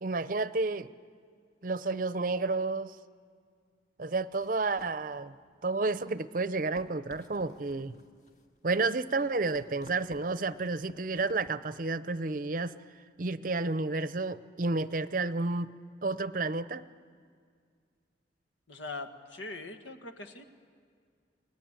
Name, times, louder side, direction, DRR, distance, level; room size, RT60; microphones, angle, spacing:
voice 1, 0.0-0.9 1.6-3.0 4.0-5.3 5.6-7.9 8.6-12.7 13.2-15.7 16.0-16.8, right 3 dB, 45° right, 15 dB, 0.6 m, -31 dB
sound 1, 4.3-11.5, left 2 dB, 40° left, 1.9 m, -57 dB
voice 2, 18.7-20.4, left 3 dB, 90° left, 7 dB, 1.7 m, -41 dB
29.0 x 20.0 x 9.0 m, 2.1 s
head